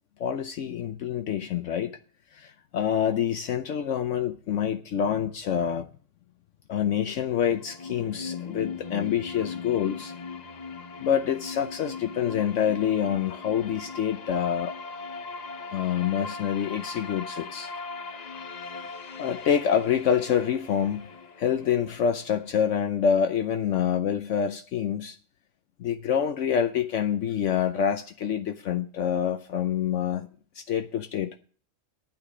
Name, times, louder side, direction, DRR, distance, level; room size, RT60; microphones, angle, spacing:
voice 1, 0.2-1.9 2.3-5.9 6.7-10.1 11.0-14.8 15.7-17.7 19.2-21.1 21.4-25.2 25.8-30.3 30.6-31.4, left 8 dB, 70° left, 1.0 m, -26 dB
sound 1, 7.1-23.0, left 4 dB, 45° left, 0.5 m, -40 dB
10.5 x 9.1 x 5.0 m
omnidirectional pair, 1.4 m